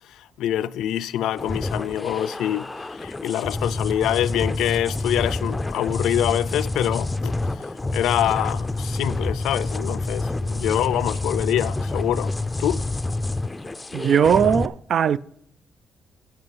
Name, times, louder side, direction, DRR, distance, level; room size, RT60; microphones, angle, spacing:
voice 1, 0.1-2.7 2.9-7.4 7.9-12.3 12.6-12.8, left 11 dB, 85° left, 0.4 m, -25 dB
sound 1, 1.4-14.7, left 2 dB, 15° left, 0.4 m, -28 dB
voice 2, 13.9-15.2, right 8 dB, 60° right, 0.3 m, -19 dB
15.5 x 5.7 x 5.4 m
cardioid pair, 90°, 0 cm